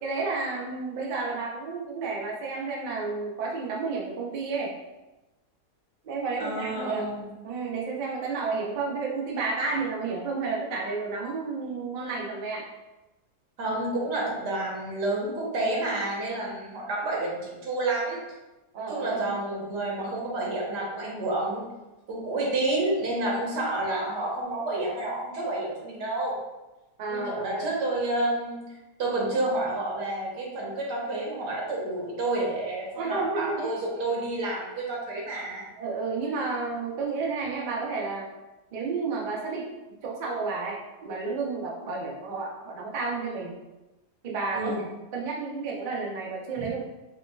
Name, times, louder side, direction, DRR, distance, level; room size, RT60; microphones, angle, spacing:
voice 1, 0.0-4.7 6.0-7.0 7.4-12.7 18.7-19.4 27.0-27.6 33.0-33.7 35.8-38.3 38.7-39.8 40.0-43.6 44.2-44.7 45.1-46.8, right 4 dB, 65° right, -2 dB, 0.4 m, -31 dB
voice 2, 6.4-7.3 13.6-18.2 18.9-21.6 22.1-26.4 27.1-35.6 44.5-44.8 46.6-46.7, right 2 dB, 85° right, -3 dB, 1.6 m, -29 dB
5.3 x 2.3 x 2.2 m, 1.0 s
omnidirectional pair, 1.7 m